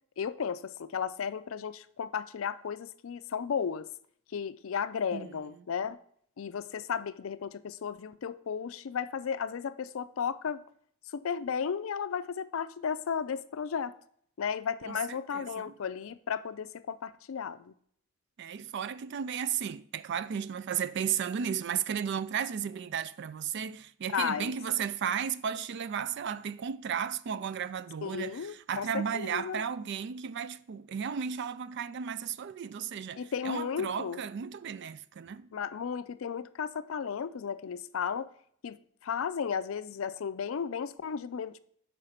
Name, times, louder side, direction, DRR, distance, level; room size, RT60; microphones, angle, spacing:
voice 1, 0.2-3.9 4.3-6.0 6.4-10.6 11.1-13.9 14.4-17.7 24.1-24.5 28.0-29.6 33.2-34.2 35.5-38.3 38.6-41.6, left 7 dB, 70° left, 0.4 m, -34 dB
voice 2, 14.9-15.7 18.4-35.5, right 7 dB, 55° right, 0.4 m, -34 dB
6.5 x 4.9 x 5.7 m
head